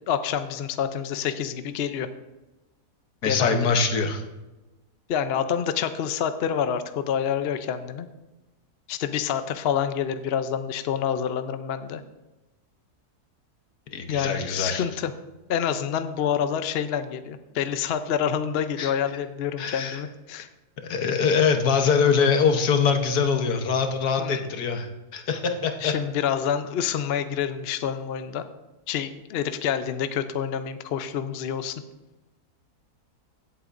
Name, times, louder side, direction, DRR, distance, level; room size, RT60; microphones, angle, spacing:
voice 1, 0.1-2.1 3.2-3.6 5.1-8.1 8.9-12.0 14.1-15.1 15.5-20.5 24.2-24.4 25.8-28.4 28.9-31.8, left 8 dB, 60° left, 10 dB, 0.6 m, -27 dB
voice 2, 3.2-4.2 13.9-14.8 18.8-18.9 19.6-20.0 20.8-25.9, left 5 dB, 80° left, 6 dB, 1.5 m, -23 dB
16.5 x 7.9 x 2.6 m, 1.1 s
omnidirectional pair, 1.7 m